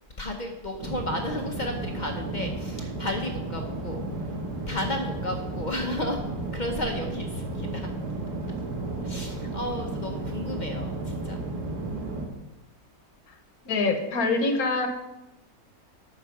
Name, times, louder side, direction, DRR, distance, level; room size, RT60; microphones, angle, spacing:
voice 1, 0.2-4.4 4.7-6.2 6.5-7.9 9.0-11.4, left 1 dB, 45° left, 3 dB, 0.6 m, -33 dB
sound 1, 0.8-12.3, right 2 dB, 75° right, 1.8 m, -33 dB
voice 2, 13.6-14.9, left 3 dB, 65° left, 5 dB, 1.4 m, -24 dB
8.5 x 4.9 x 5.8 m, 0.99 s
omnidirectional pair, 1.8 m